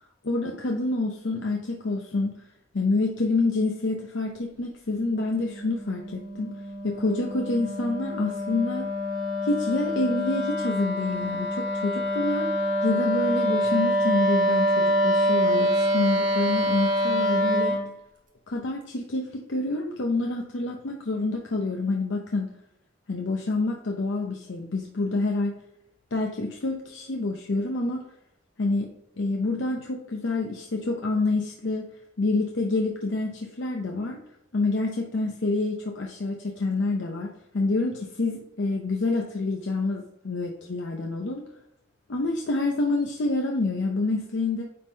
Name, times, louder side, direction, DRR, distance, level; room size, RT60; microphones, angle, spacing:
voice 1, 0.2-2.3 2.7-6.5 6.8-8.9 9.4-12.5 12.8-17.8 18.5-22.5 23.1-25.5 26.1-28.1 28.6-31.9 32.2-34.2 34.5-41.5 42.1-44.6, left 2 dB, 85° left, 1 dB, 0.7 m, -27 dB
Wind instrument woodwind instrument, 4.9-17.9, equal, 45° right, 1.4 m, -26 dB
9.3 x 3.7 x 2.8 m, 0.81 s
head